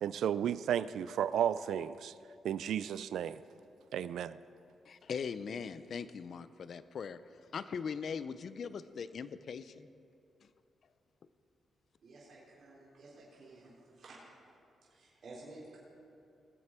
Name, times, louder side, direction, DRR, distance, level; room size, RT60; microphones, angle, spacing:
voice 1, 0.0-2.1 2.4-3.4 3.9-4.4, right 9 dB, 85° right, 16 dB, 0.3 m, -33 dB
voice 2, 4.9-7.2 7.5-9.9, left 6 dB, 65° left, 14 dB, 0.5 m, -40 dB
voice 3, 12.0-13.7 14.0-14.2 14.9-15.8, right 2 dB, 65° right, -7 dB, 3.6 m, -53 dB
20.0 x 7.8 x 4.4 m, 2.6 s
cardioid pair, 75°, 0 cm